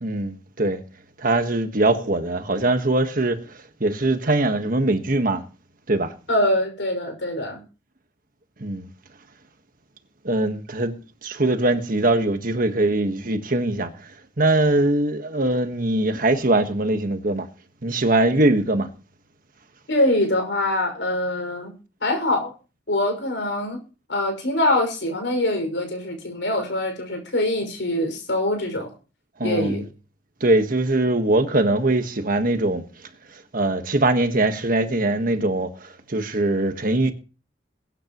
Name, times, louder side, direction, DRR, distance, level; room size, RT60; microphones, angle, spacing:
voice 1, 0.0-0.8 1.2-3.4 3.8-5.4 5.9-6.1 8.6-8.9 10.2-11.0 11.2-13.9 14.4-17.5 17.8-18.9 29.4-29.8 30.4-32.8 33.5-35.7 36.1-37.1, right 2 dB, 50° right, 1.4 m, -21 dB
voice 2, 6.3-7.6 19.9-21.7 22.0-22.5 22.9-23.8 24.1-28.9 29.4-29.9, left 1 dB, 80° left, 5.9 m, -24 dB
22.0 x 9.8 x 3.1 m
head